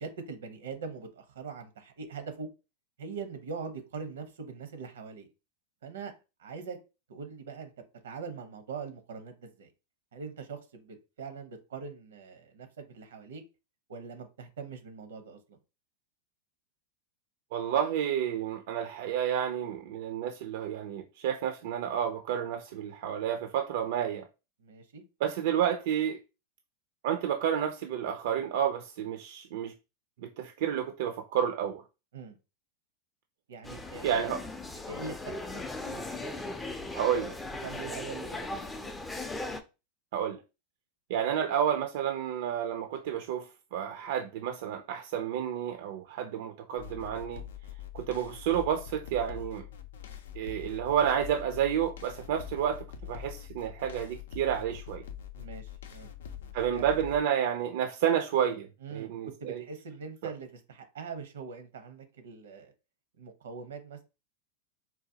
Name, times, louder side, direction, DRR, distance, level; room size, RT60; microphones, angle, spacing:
voice 1, 0.0-2.5 3.0-5.3 5.8-6.1 6.4-6.8 7.1-7.7 8.0-9.7 10.1-13.4 13.9-15.6 24.6-25.0 32.1-32.4 33.5-34.3 34.7-36.7 37.0-37.3 37.6-38.9 55.3-56.1 56.7-56.9 58.8-62.7 63.2-64.0, right 5 dB, 85° right, 0.8 m, -42 dB
voice 2, 17.5-24.2 25.2-26.2 27.0-29.7 30.2-31.8 34.0-34.4 36.9-37.3 40.1-40.4 41.1-47.4 47.9-49.7 50.4-55.0 56.5-59.6, right 9 dB, 65° right, 0.4 m, -30 dB
sound 1, 33.6-39.6, left 2 dB, 10° left, 0.4 m, -38 dB
sound 2, 46.8-57.2, left 9 dB, 85° left, 0.5 m, -44 dB
3.8 x 2.3 x 2.7 m
supercardioid pair, 125°, 0 cm